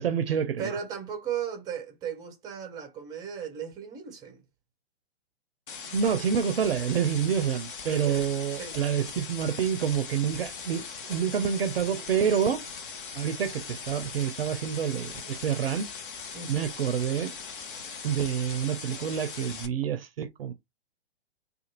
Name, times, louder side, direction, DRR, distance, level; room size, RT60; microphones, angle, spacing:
voice 1, 0.0-0.8 5.8-12.6 13.1-15.9 16.5-17.3 18.0-20.5, right 8 dB, 60° right, 0.5 m, -28 dB
voice 2, 0.6-4.4 7.9-8.3 8.5-8.8 16.3-16.7, right 8 dB, 10° right, 0.5 m, -36 dB
sound 1, 5.7-19.7, left 5 dB, 50° left, 0.8 m, -40 dB
2.5 x 2.3 x 2.9 m
figure-of-eight pair, 115°, 33 cm